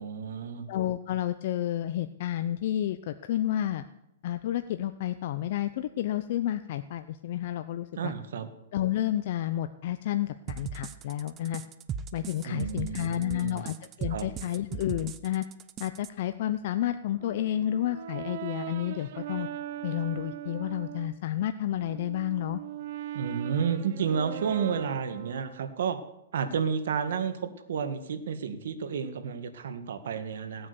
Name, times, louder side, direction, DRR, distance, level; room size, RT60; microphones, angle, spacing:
voice 1, 0.0-0.7 8.0-8.5 12.5-13.6 14.1-14.3 23.1-26.0 26.3-30.7, right 6 dB, 70° right, 8 dB, 1.8 m, -31 dB
voice 2, 0.7-3.8 4.2-8.1 8.7-11.6 12.1-15.4 15.8-19.5 19.8-22.6, left 12 dB, 50° left, 10 dB, 0.6 m, -30 dB
sound 1, 10.5-16.1, right 7 dB, 20° right, 0.6 m, -38 dB
Brass instrument, 17.2-21.2 21.7-25.8, right 12 dB, 50° right, 0.8 m, -40 dB
17.5 x 8.7 x 6.9 m, 0.85 s
hypercardioid pair, 155°, 0 cm